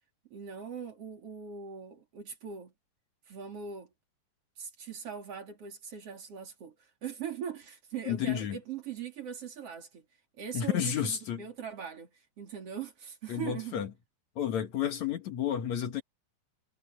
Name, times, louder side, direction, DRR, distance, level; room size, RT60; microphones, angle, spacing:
voice 1, 0.3-2.7 3.3-3.9 4.6-10.0 10.4-13.8, right 7 dB, 35° right, 3.4 m, -41 dB
voice 2, 8.1-8.6 10.5-11.4 13.3-13.9 14.4-16.0, left 9 dB, 65° left, 1.9 m, -31 dB
omnidirectional pair, 5.2 m